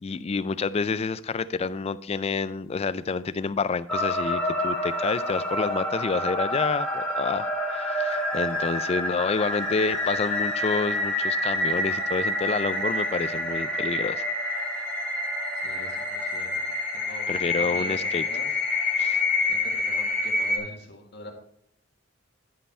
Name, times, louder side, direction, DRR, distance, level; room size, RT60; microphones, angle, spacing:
voice 1, 0.0-14.3 17.3-18.2 19.0-19.2, left 4 dB, 30° left, 15 dB, 0.3 m, -28 dB
sound 1, 3.9-20.6, left 1 dB, 5° left, 1.9 m, -27 dB
voice 2, 15.6-16.6 16.9-18.5 18.9-21.3, left 1 dB, 60° left, 1 dB, 1.8 m, -44 dB
11.0 x 5.6 x 4.2 m, 0.69 s
head